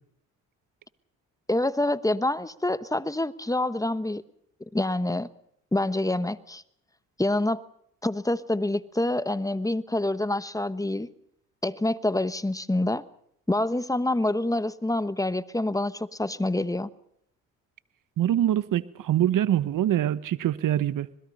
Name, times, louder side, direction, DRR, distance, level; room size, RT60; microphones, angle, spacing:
voice 1, 1.5-4.2 4.7-5.3 5.7-6.6 7.2-7.6 8.0-11.1 11.6-13.0 13.5-16.9, left 1 dB, 10° left, 14 dB, 1.1 m, -26 dB
voice 2, 18.2-21.1, right 11 dB, 60° right, 15 dB, 1.2 m, -24 dB
26.5 x 21.0 x 5.5 m, 0.71 s
supercardioid pair, 70°, 36 cm